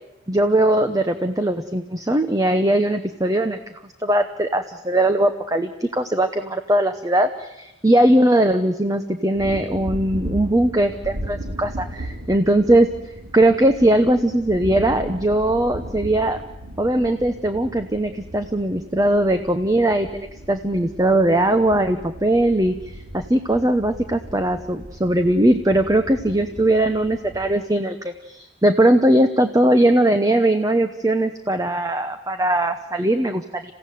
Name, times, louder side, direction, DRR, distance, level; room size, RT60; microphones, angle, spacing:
voice 1, 0.3-3.6 4.0-12.9 13.3-16.4 16.8-33.7, right 1 dB, 20° right, 8 dB, 0.9 m, -20 dB
sound 1, 9.3-27.6, right 1 dB, 80° right, 3.5 m, -36 dB
28.0 x 16.5 x 9.3 m, 0.92 s
head